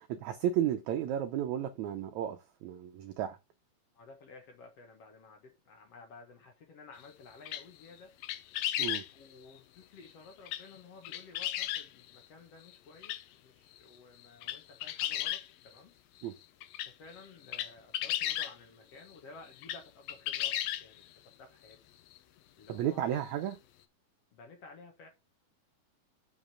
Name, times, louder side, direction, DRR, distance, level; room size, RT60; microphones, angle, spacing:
voice 1, 0.0-3.4 8.8-9.0 16.2-16.3 22.7-23.6, right 10 dB, 80° right, 1.6 m, -33 dB
voice 2, 3.9-8.2 8.9-15.9 16.9-21.8 22.6-23.2 24.3-25.1, left 3 dB, 55° left, 2.0 m, -54 dB
sound 1, 7.5-7.9 8.2-9.1 10.5-10.8 11.0-11.9 12.7-12.8 13.0-13.2 13.8-13.9 14.2-15.8 16.2-16.3 16.6-18.5 19.5-19.8 20.1-21.0 21.7-21.8 22.1-22.2 23.5-23.6, left 13 dB, 85° left, 2.6 m, -34 dB
7.2 x 5.2 x 4.9 m
omnidirectional pair, 4.1 m